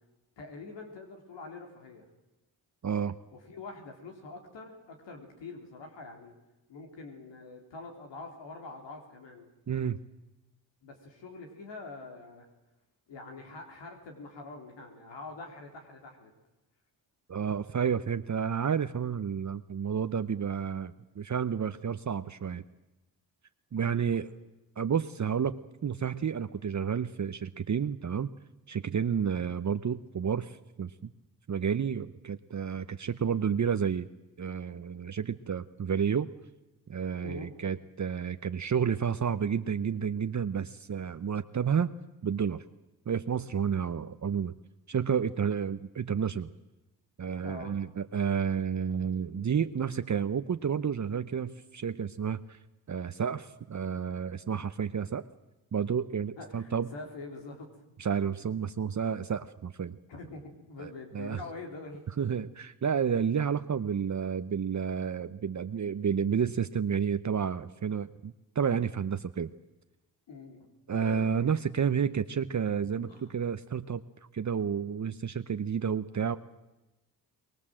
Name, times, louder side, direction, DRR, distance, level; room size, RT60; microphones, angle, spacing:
voice 1, 0.4-2.1 3.3-6.3 6.7-9.5 10.8-12.5 13.1-16.3 37.2-37.5 47.4-47.9 56.4-57.8 60.1-62.0 70.3-71.3 73.0-73.3, left 3 dB, 85° left, 2 dB, 3.5 m, -45 dB
voice 2, 2.8-3.1 9.7-10.0 17.3-22.6 23.7-24.3 24.8-25.6 25.8-28.3 28.7-31.1 31.5-34.1 34.4-36.3 36.9-41.9 42.2-42.6 43.1-44.5 44.9-46.5 47.2-52.6 52.9-55.2 55.7-56.9 58.0-60.0 60.8-60.9 61.1-61.4 62.2-69.5 70.9-73.1 73.3-74.0 74.3-76.4, right 7 dB, 40° right, 10 dB, 0.9 m, -30 dB
23.0 x 21.0 x 7.6 m, 1.0 s
cardioid pair, 65°, 42 cm